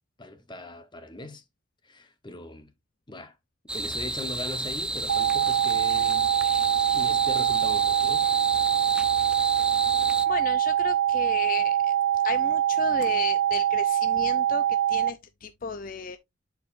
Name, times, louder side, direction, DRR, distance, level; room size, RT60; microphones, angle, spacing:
voice 1, 0.2-1.4 1.8-2.7 3.1-3.4 3.7-6.3 6.9-8.3, left 1 dB, 25° left, 1.0 m, -40 dB
sound 1, 3.7-10.3, right 1 dB, 5° right, 0.5 m, -32 dB
sound 2, 5.1-15.1, right 11 dB, 80° right, 0.5 m, -24 dB
voice 2, 10.3-11.9 12.2-16.2, left 5 dB, 45° left, 0.5 m, -34 dB
11.0 x 4.9 x 2.5 m
head